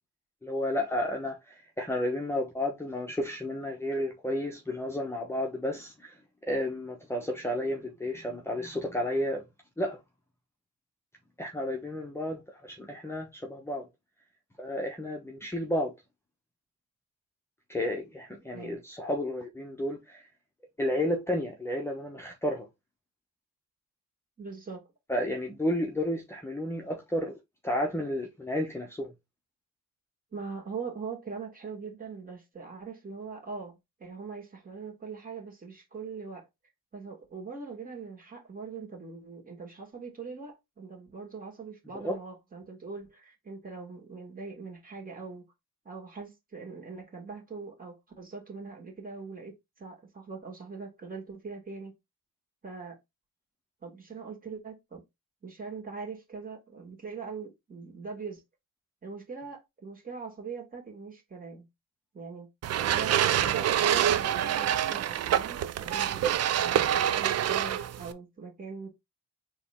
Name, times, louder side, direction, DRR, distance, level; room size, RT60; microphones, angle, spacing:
voice 1, 0.4-6.1 6.4-9.4 9.8-10.0 11.4-13.9 14.6-15.9 17.7-20.2 20.8-22.7 25.1-27.3 27.6-29.1 41.9-42.2, left 1 dB, 10° left, 1.0 m, -32 dB
voice 2, 24.4-24.8 30.3-36.5 36.9-45.4 45.8-51.9 52.6-53.0 53.8-55.0 55.4-58.4 59.0-61.6 62.1-62.5 62.9-68.9, right 5 dB, 30° right, 2.4 m, -42 dB
sound 1, 62.6-68.1, right 10 dB, 55° right, 0.5 m, -26 dB
4.2 x 3.1 x 3.6 m
cardioid pair, 90°, 30 cm